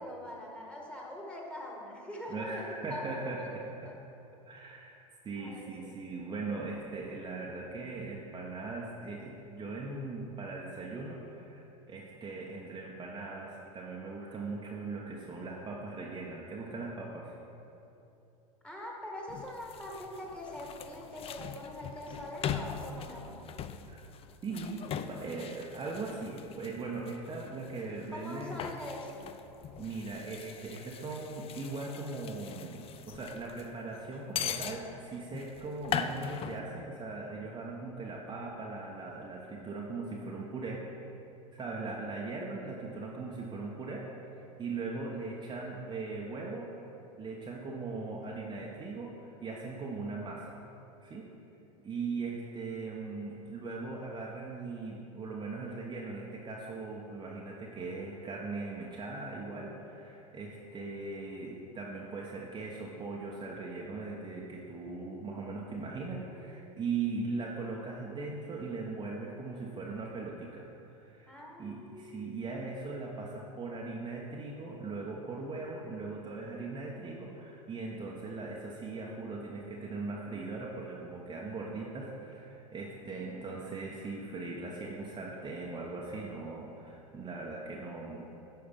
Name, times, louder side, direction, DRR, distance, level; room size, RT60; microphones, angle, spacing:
voice 1, 0.0-3.9 5.4-6.0 18.6-23.4 28.1-29.3 41.6-42.0 66.0-66.8 71.3-72.5 83.1-83.7, left 1 dB, 5° left, -2 dB, 1.9 m, -44 dB
voice 2, 2.3-3.6 4.5-5.0 5.2-17.3 23.9-24.0 24.4-28.6 29.8-40.8 41.5-44.1 44.3-46.7 47.2-50.5 51.0-51.3 51.8-88.3, right 3 dB, 25° right, -2 dB, 1.0 m, -39 dB
sound 1, 19.3-36.6, left 8 dB, 30° left, 0.5 m, -41 dB
9.7 x 5.7 x 5.3 m, 2.9 s
hypercardioid pair, 95°, 19 cm